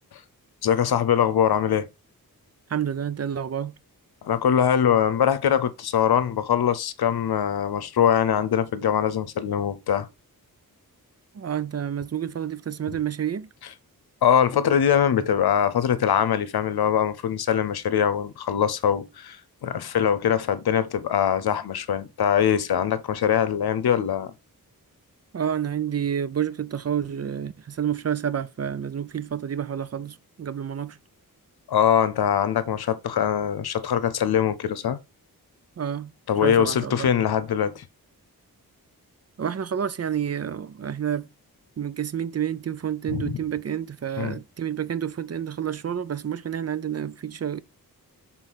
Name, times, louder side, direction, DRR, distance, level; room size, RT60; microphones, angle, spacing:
voice 1, 0.6-1.9 4.2-10.1 14.2-24.3 31.7-35.0 36.3-37.9 43.1-43.3 44.2-44.4, left 9 dB, 90° left, 0.7 m, -22 dB
voice 2, 2.7-3.8 11.3-13.5 25.3-31.0 35.8-36.1 36.4-37.1 39.4-41.3 41.8-47.6, right 9 dB, 45° right, 0.5 m, -29 dB
6.3 x 3.8 x 4.0 m
wide cardioid pair, 90°, 37 cm